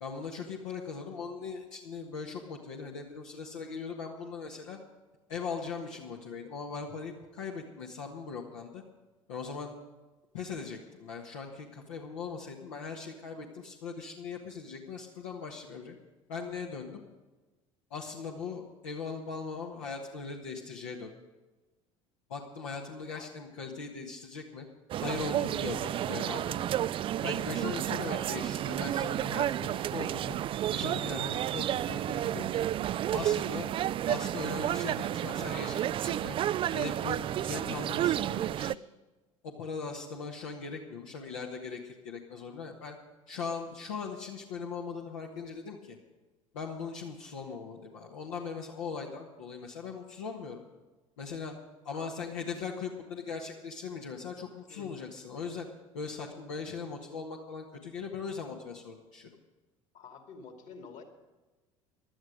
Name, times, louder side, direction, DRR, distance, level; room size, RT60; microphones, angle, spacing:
voice 1, 0.0-4.8 5.3-8.8 9.3-9.7 10.3-15.9 16.3-17.0 17.9-21.1 22.3-24.6 25.0-26.7 27.2-30.4 30.7-32.7 33.1-33.7 34.1-36.4 36.7-38.8 39.4-42.9 43.3-46.0 46.5-50.6 51.2-51.5 51.8-55.7 55.9-59.3, left 5 dB, 70° left, -1 dB, 1.6 m, -39 dB
sound 1, 24.9-38.8, right 12 dB, 30° right, 0.4 m, -31 dB
voice 2, 54.7-55.0 59.9-61.0, left 5 dB, 45° left, 5 dB, 2.5 m, -49 dB
17.0 x 12.5 x 5.1 m, 1.2 s
figure-of-eight pair, 65°, 17 cm